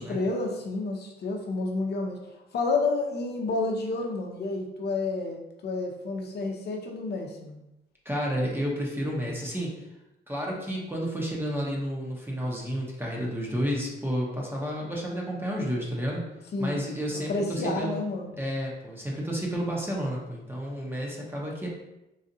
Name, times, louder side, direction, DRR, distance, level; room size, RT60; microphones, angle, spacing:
voice 1, 0.0-7.6 16.5-16.8 17.1-18.4, left 3 dB, 55° left, 1 dB, 0.7 m, -30 dB
voice 2, 8.0-9.7 10.3-16.2 16.6-18.0 18.4-21.7, equal, 10° right, -3 dB, 0.8 m, -31 dB
3.9 x 2.4 x 2.7 m, 0.92 s
cardioid pair, 90°, 20 cm